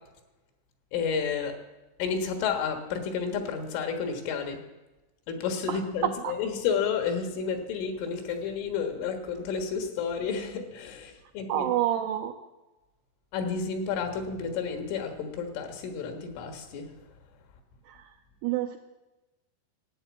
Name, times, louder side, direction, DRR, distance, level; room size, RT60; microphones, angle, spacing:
voice 1, 0.9-1.6 2.0-4.6 5.3-11.7 13.3-16.9, left 6 dB, 85° left, 5 dB, 4.1 m, -31 dB
voice 2, 5.7-6.3 11.5-12.3 17.9-18.1 18.4-18.8, right 12 dB, 85° right, 4 dB, 2.3 m, -29 dB
14.0 x 8.9 x 8.3 m, 1.1 s
omnidirectional pair, 5.5 m